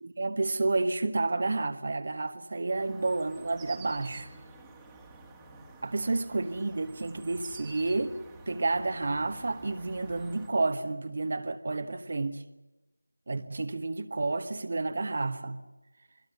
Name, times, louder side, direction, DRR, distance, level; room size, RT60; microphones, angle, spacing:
voice 1, 0.0-4.3 5.8-8.2 8.5-12.4 13.3-15.6, right 3 dB, 35° right, 1.2 m, -30 dB
sound 1, 2.7-10.5, right 3 dB, 5° right, 1.7 m, -50 dB
28.0 x 22.0 x 8.0 m
figure-of-eight pair, 165°, 0 cm